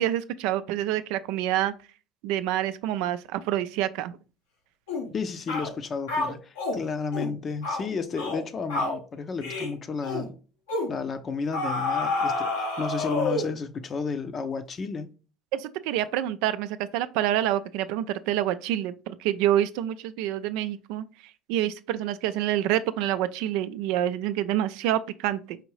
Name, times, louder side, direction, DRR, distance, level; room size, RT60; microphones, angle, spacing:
voice 1, 0.0-1.7 2.2-4.2 15.5-21.0 21.5-25.6, right 12 dB, 70° right, 0.3 m, -27 dB
sound 1, 4.9-5.1 5.5-5.7 6.1-6.8 7.1-7.3 7.6-7.8 8.2-8.4 8.7-9.0 9.4-9.7 10.0-10.3 10.7-10.9 11.5-13.6, left 3 dB, 85° left, 1.1 m, -29 dB
voice 2, 5.1-10.4 10.9-15.1, left 4 dB, 40° left, 0.6 m, -32 dB
4.8 x 2.6 x 3.2 m
hypercardioid pair, 75°, 0 cm